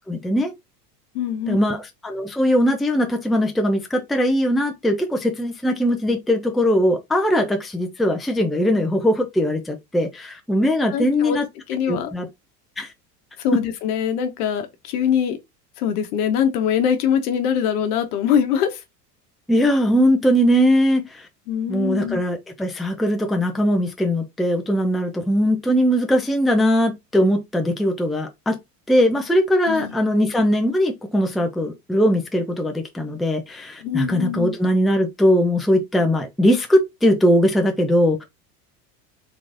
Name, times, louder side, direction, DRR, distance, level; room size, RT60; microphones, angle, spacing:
voice 1, 0.1-0.5 1.5-11.5 11.9-12.3 12.8-12.9 19.5-21.3 21.7-28.6 28.9-38.2, equal, ahead, 0.5 m, -20 dB
voice 2, 1.1-1.6 10.9-11.4 11.7-12.1 13.4-15.4 15.8-18.8 21.5-22.2 29.7-29.9 33.8-34.6, left 8 dB, 65° left, 1.0 m, -23 dB
3.8 x 3.0 x 2.6 m
hypercardioid pair, 80°, 48 cm